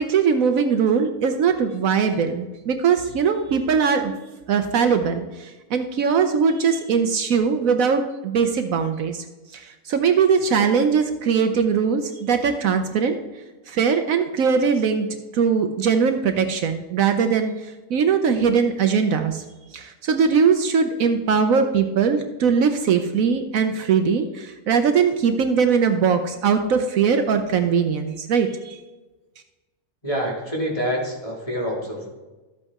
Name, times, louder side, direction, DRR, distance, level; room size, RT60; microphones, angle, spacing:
voice 1, 0.0-4.1 4.5-9.2 9.5-9.6 9.9-13.2 13.7-15.1 15.3-17.5 17.9-19.4 19.7-28.8, right 6 dB, 70° right, 7 dB, 1.1 m, -20 dB
voice 2, 30.0-32.1, equal, 25° left, -2 dB, 2.3 m, -26 dB
13.0 x 8.1 x 3.6 m, 1.2 s
omnidirectional pair, 1.6 m